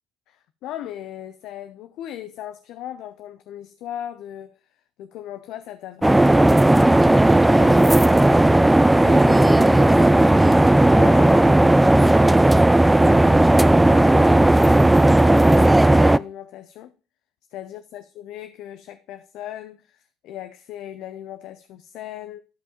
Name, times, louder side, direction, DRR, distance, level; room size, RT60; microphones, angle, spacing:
voice 1, 0.3-4.6 5.0-8.3 9.0-12.4 13.0-16.9 17.5-22.4, left 12 dB, 60° left, 0.5 m, -38 dB
sound 1, 6.0-16.2, right 1 dB, 10° right, 0.3 m, -15 dB
12.0 x 5.3 x 3.0 m
hypercardioid pair, 60°, 0 cm